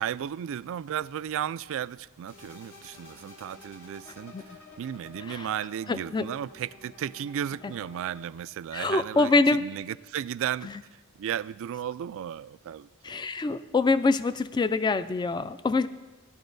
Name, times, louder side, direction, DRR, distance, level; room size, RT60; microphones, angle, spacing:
voice 1, 0.0-4.3 4.8-10.7 11.2-13.1, right 9 dB, 65° right, 18 dB, 0.3 m, -34 dB
sound 1, 2.3-8.2, left 3 dB, 90° left, 3.4 m, -51 dB
voice 2, 5.9-6.3 8.7-9.6 10.6-10.7 13.0-15.9, left 3 dB, 20° left, 13 dB, 0.3 m, -25 dB
17.0 x 11.0 x 2.6 m, 1.2 s
head